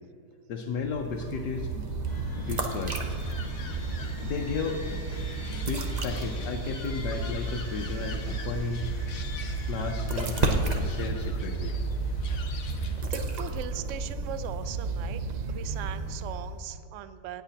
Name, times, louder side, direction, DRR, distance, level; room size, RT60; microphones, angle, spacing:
voice 1, 0.5-1.8 2.4-3.0 4.2-5.1 5.5-8.9 9.6-11.8, left 5 dB, 80° left, 1 dB, 1.4 m, -34 dB
sound 1, 0.7-16.6, right 3 dB, 35° right, 0.7 m, -32 dB
sound 2, 2.1-11.0, left 1 dB, 25° left, 1.9 m, -45 dB
sound 3, 2.9-13.1, left 6 dB, 60° left, 1.2 m, -47 dB
voice 2, 13.1-17.4, right 10 dB, 70° right, 12 dB, 0.7 m, -40 dB
18.5 x 7.9 x 2.9 m, 2.5 s
omnidirectional pair, 1.8 m